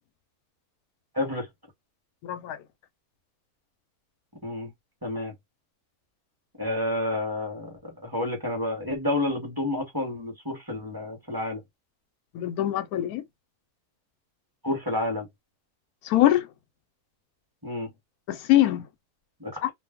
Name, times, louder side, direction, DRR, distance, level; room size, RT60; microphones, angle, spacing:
voice 1, 1.1-1.5 4.4-4.7 5.0-5.3 6.6-11.6 14.6-15.3 17.6-17.9 19.4-19.6, left 1 dB, 15° right, 1.0 m, -30 dB
voice 2, 2.2-2.6 12.3-13.2 16.0-16.5 18.3-18.9 19.6-19.7, left 13 dB, 85° left, 1.1 m, -23 dB
2.5 x 2.0 x 3.5 m
omnidirectional pair, 1.5 m